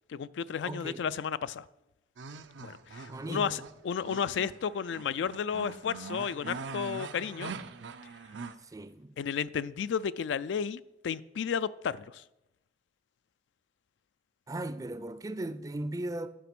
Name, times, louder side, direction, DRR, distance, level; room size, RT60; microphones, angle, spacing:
voice 1, 0.1-1.6 2.6-7.5 9.2-12.2, left 7 dB, 80° left, 0.3 m, -33 dB
voice 2, 0.6-1.1 3.1-3.6 8.7-9.2 14.5-16.3, right 1 dB, 20° right, 0.4 m, -37 dB
sound 1, 2.2-8.5, right 4 dB, 90° right, 0.6 m, -43 dB
10.0 x 5.9 x 6.0 m
head